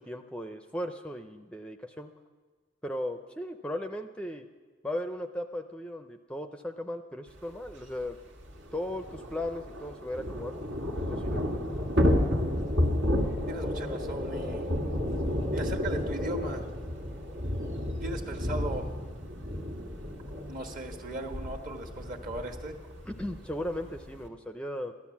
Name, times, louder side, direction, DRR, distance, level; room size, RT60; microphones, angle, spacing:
voice 1, 0.0-2.1 2.8-4.5 4.8-8.2 8.7-11.9 23.1-24.9, left 1 dB, 5° left, 6 dB, 0.5 m, -37 dB
Thunder / Rain, 7.7-7.8 8.0-8.1 8.4-24.3, left 1 dB, 75° right, 1.8 m, -31 dB
voice 2, 13.5-14.6 15.5-16.7 18.0-18.9 20.5-22.7, right 1 dB, 45° right, 4 dB, 1.5 m, -37 dB
15.5 x 12.0 x 7.2 m, 1.5 s
head